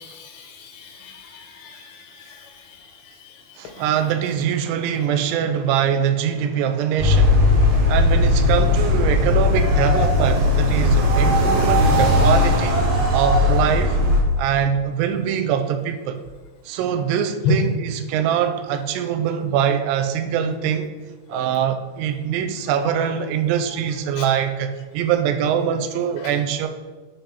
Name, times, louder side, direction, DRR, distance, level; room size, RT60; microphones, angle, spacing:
voice 1, 0.0-3.9 17.4-17.6 21.3-21.5 23.0-23.1 24.1-24.3 26.2-26.4, left 3 dB, 90° left, 4 dB, 3.1 m, -31 dB
voice 2, 3.6-7.4 7.9-12.8 13.1-14.0 14.4-16.2 16.7-20.9 21.3-26.7, right 8 dB, 90° right, 7 dB, 2.8 m, -23 dB
sound 1, 7.0-14.2, left 2 dB, 60° right, 1.6 m, -17 dB
8.7 x 3.5 x 5.7 m, 1.3 s
omnidirectional pair, 4.8 m